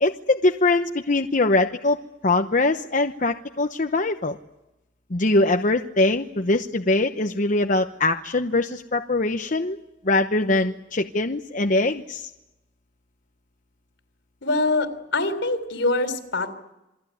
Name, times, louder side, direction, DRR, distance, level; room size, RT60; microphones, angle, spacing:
voice 1, 0.0-2.0 2.2-4.4 5.1-9.8 10.0-12.3, left 2 dB, 45° left, 5 dB, 1.0 m, -22 dB
voice 2, 14.4-16.5, left 2 dB, 80° left, 9 dB, 3.7 m, -24 dB
28.0 x 21.0 x 9.5 m, 0.95 s
head